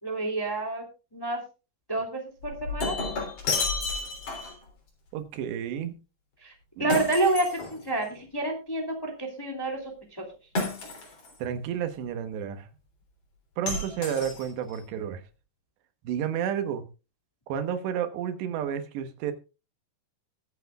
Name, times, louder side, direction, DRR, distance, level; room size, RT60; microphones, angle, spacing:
voice 1, 0.0-0.9 1.1-1.4 1.9-3.0 6.4-6.5 6.8-10.2, right 2 dB, 10° left, 1 dB, 1.9 m, -29 dB
Shatter, 2.4-4.6 6.9-8.2 10.6-11.4 13.7-14.8, left 3 dB, 45° left, 4.5 m, -31 dB
voice 2, 5.1-5.9 6.8-6.9 11.4-12.7 13.6-15.2 16.0-16.9 17.5-19.3, right 9 dB, 85° right, 9 dB, 3.4 m, -31 dB
22.5 x 8.1 x 2.3 m, 0.31 s
omnidirectional pair, 4.9 m